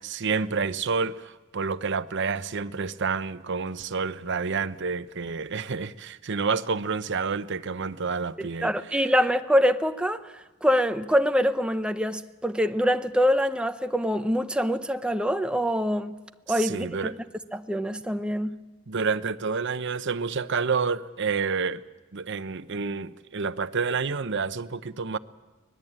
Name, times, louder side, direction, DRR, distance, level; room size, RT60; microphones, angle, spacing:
voice 1, 0.0-8.7 16.6-17.1 18.9-21.8 22.1-25.2, right 5 dB, 60° right, 0.9 m, -29 dB
voice 2, 8.4-16.2 16.5-17.1 17.5-18.6, equal, 5° right, 0.8 m, -25 dB
25.0 x 19.5 x 8.9 m
head